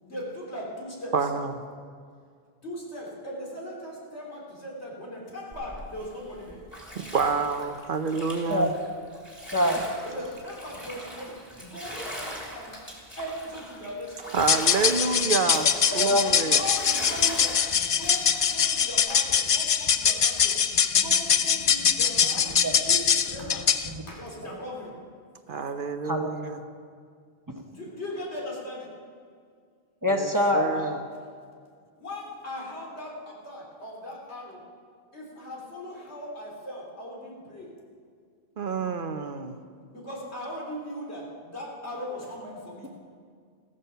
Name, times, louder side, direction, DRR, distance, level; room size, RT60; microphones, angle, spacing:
voice 1, 0.0-1.3 2.6-6.6 10.0-14.3 16.0-22.6 22.8-23.7 24.1-25.0 27.7-28.9 31.1-31.3 32.0-34.6 35.1-37.7 39.9-42.9, equal, 85° left, -3 dB, 3.6 m, -39 dB
voice 2, 1.1-1.5 7.0-8.7 14.3-16.6 25.5-26.6 30.1-31.0 38.6-39.6, right 5 dB, 55° right, 8 dB, 0.9 m, -28 dB
Bathtub (filling or washing), 5.5-19.0, equal, 10° left, 3.0 m, -41 dB
voice 3, 9.5-9.9 15.9-16.2 22.6-22.7 26.0-26.3 27.5-27.6 30.0-30.9, left 1 dB, 20° right, 3 dB, 1.0 m, -24 dB
sound 1, 14.4-23.9, left 7 dB, 55° left, 0.3 m, -23 dB
15.0 x 14.0 x 5.7 m, 2.1 s
omnidirectional pair, 1.1 m